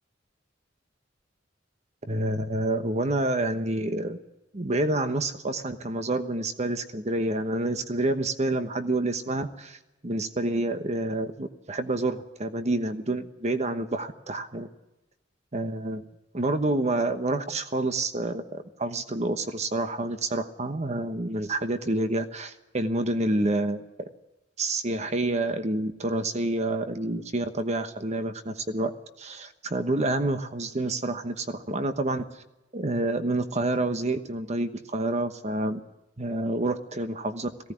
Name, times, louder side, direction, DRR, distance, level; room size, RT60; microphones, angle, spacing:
voice 1, 2.1-4.2 4.5-14.7 15.5-16.0 16.3-18.5 18.8-23.8 24.6-28.9 29.2-32.2 32.7-35.8 36.2-37.5, right 2 dB, 40° right, 9 dB, 1.1 m, -28 dB
18.5 x 16.5 x 9.9 m, 0.98 s
head